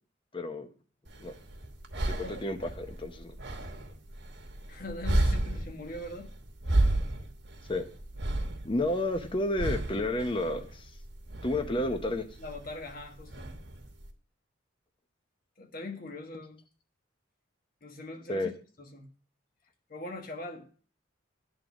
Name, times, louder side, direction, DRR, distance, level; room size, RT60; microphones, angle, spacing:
voice 1, 0.3-0.7 1.2-1.3 2.3-3.4 7.7-7.8 8.6-10.9 11.4-12.3 18.3-18.5, left 1 dB, 25° left, 0.8 m, -31 dB
sound 1, 1.1-14.1, right 1 dB, 60° right, 1.2 m, -33 dB
voice 2, 2.1-2.4 4.7-6.3 11.8-11.9 12.4-13.5 15.6-16.6 17.8-18.5 18.8-19.1 19.9-20.7, left 2 dB, 45° left, 1.3 m, -41 dB
9.6 x 3.9 x 7.0 m
head